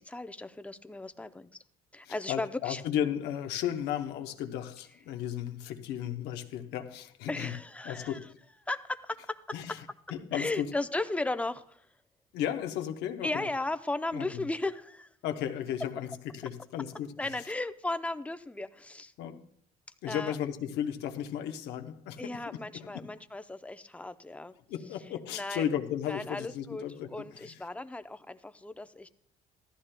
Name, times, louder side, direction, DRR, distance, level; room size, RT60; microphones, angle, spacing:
voice 1, 0.0-1.5 1.9-2.8 7.3-8.3 8.7-9.8 10.3-11.8 13.2-15.1 17.2-19.1 20.1-20.4 22.2-24.5 25.3-25.7 26.1-29.1, left 2 dB, 10° left, 0.5 m, -36 dB
voice 2, 2.0-7.5 7.8-8.3 9.5-10.7 12.3-13.5 14.1-14.4 15.2-17.4 19.2-19.4 20.0-23.1 24.7-27.6, left 10 dB, 85° left, 0.9 m, -35 dB
14.5 x 13.0 x 2.2 m
cardioid pair, 110°, 17 cm